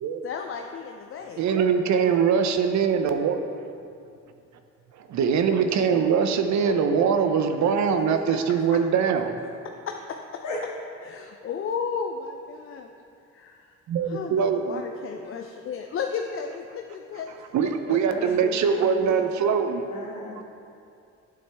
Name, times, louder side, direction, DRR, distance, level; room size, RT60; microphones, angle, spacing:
voice 1, 0.2-1.4 1.7-2.1 8.3-8.8 9.9-10.4 11.0-12.9 13.3-13.8 14.1-17.3 17.9-18.3 19.0-19.1 19.5-19.8, left 6 dB, 45° left, 3 dB, 0.5 m, -34 dB
voice 2, 1.4-3.4 5.0-9.4 13.9-14.8 17.5-19.9, right 6 dB, 70° right, 7 dB, 0.6 m, -22 dB
voice 3, 17.8-19.4 19.9-20.4, left 2 dB, 70° left, -3 dB, 1.6 m, -36 dB
8.9 x 6.4 x 3.4 m, 2.5 s
cardioid pair, 90°, 30 cm